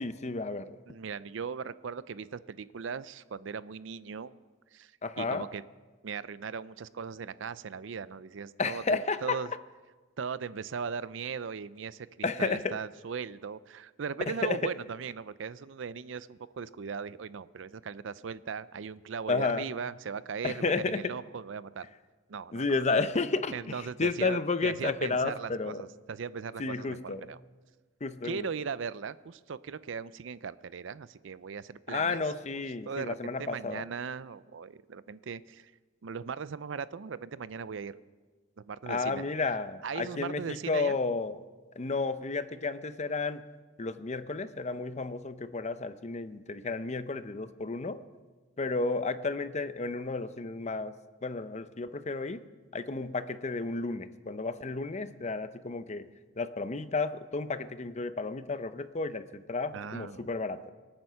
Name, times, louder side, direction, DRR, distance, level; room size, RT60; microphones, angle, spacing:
voice 1, 0.0-0.8 5.0-5.5 8.6-9.4 12.2-12.8 14.4-14.7 19.3-19.7 20.4-21.1 22.5-25.8 26.6-27.2 28.0-28.5 31.9-33.9 38.9-41.4 41.8-43.4 43.8-48.0 48.6-50.9 51.2-52.4 52.7-56.1 56.4-60.6, left 3 dB, 35° left, 12 dB, 0.7 m, -32 dB
voice 2, 0.9-4.3 4.7-4.9 5.2-5.6 6.0-9.5 10.2-21.8 22.3-22.8 23.5-27.4 28.2-32.2 32.5-35.7 36.0-37.9 38.7-39.2 39.8-41.0 59.7-60.3, right 6 dB, 70° right, 17 dB, 0.5 m, -38 dB
25.0 x 8.9 x 5.7 m, 1.3 s
head